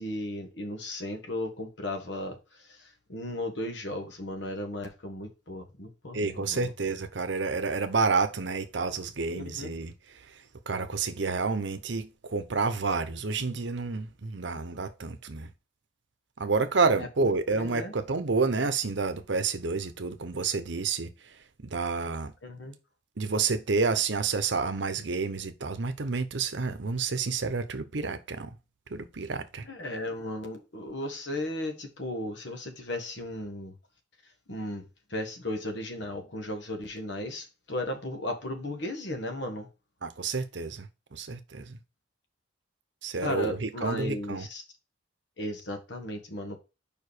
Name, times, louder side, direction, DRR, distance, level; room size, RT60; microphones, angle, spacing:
voice 1, 0.0-6.7 9.4-9.8 17.0-17.1 17.5-17.9 22.4-22.7 29.7-33.7 34.5-34.8 35.1-39.7 43.2-44.6 45.4-46.6, left 1 dB, 65° left, 1.5 m, -35 dB
voice 2, 6.1-9.9 10.7-15.5 16.4-21.1 21.6-22.3 23.2-28.5 28.9-29.7 40.0-41.8 43.0-44.5, right 4 dB, 65° right, 0.8 m, -29 dB
5.1 x 4.9 x 4.9 m
head